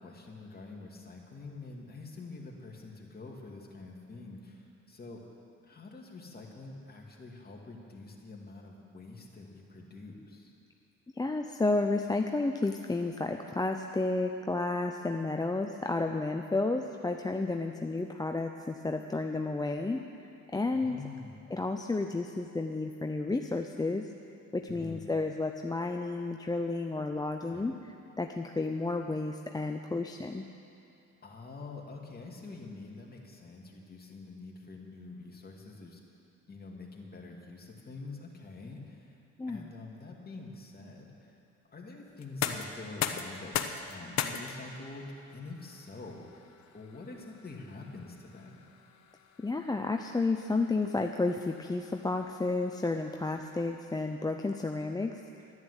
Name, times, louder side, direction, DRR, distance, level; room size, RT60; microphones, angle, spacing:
voice 1, 0.0-5.2 5.6-10.5 20.6-21.4 24.7-25.0 27.5-27.7 31.2-36.0 36.5-39.1 39.5-41.4 41.7-46.5 46.7-48.6, left 3 dB, 30° left, -1 dB, 2.4 m, -46 dB
voice 2, 11.2-21.0 21.5-24.1 24.5-27.8 28.2-30.5 39.4-39.7 49.4-55.2, left 3 dB, 15° left, 4 dB, 0.6 m, -31 dB
sound 1, 42.1-53.9, left 8 dB, 65° left, 0.9 m, -41 dB
12.0 x 10.5 x 8.2 m, 2.8 s
cardioid pair, 90°, 30 cm